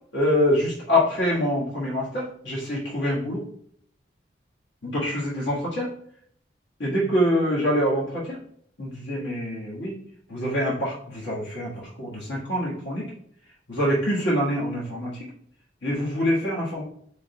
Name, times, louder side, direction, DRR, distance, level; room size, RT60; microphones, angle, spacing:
voice 1, 0.1-3.4 4.8-5.9 6.8-8.4 8.8-9.9 10.3-13.1 13.7-15.2 15.8-16.8, equal, 80° left, -6 dB, 1.6 m, -25 dB
3.8 x 3.4 x 3.9 m, 0.65 s
head